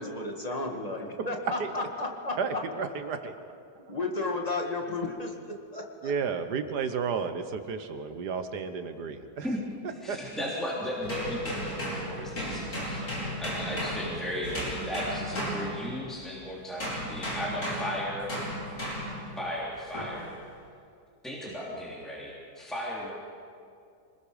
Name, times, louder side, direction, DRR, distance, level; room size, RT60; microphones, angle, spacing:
voice 1, 0.0-2.6 3.9-6.1, left 2 dB, 25° left, 1 dB, 2.0 m, -33 dB
voice 2, 2.4-3.3 6.0-9.5 10.1-10.5 14.4-14.6, right 5 dB, 90° right, 8 dB, 1.8 m, -32 dB
voice 3, 10.0-18.3 19.4-20.3 21.2-23.1, equal, ahead, -6 dB, 3.2 m, -35 dB
sound 1, 11.0-16.3 16.8-19.3 19.9-20.2, equal, 65° left, 5.8 m, -35 dB
26.5 x 20.5 x 5.1 m, 2.4 s
omnidirectional pair, 1.7 m